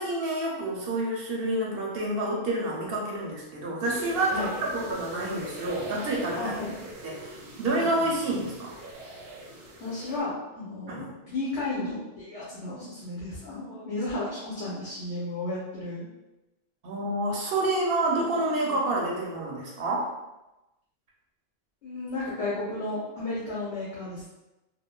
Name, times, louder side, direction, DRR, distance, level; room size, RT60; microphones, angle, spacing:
voice 1, 0.0-6.5 7.0-8.7 10.9-11.1 16.8-20.1, right 2 dB, 65° right, -3 dB, 0.8 m, -28 dB
sound 1, 3.8-10.2, right 1 dB, 80° right, 1.0 m, -42 dB
voice 2, 6.3-6.7 7.7-8.1 9.8-11.0 11.3-16.1 18.3-18.8 21.8-24.3, left 2 dB, 85° left, -8 dB, 1.0 m, -33 dB
3.0 x 2.0 x 2.2 m, 0.99 s
omnidirectional pair, 1.1 m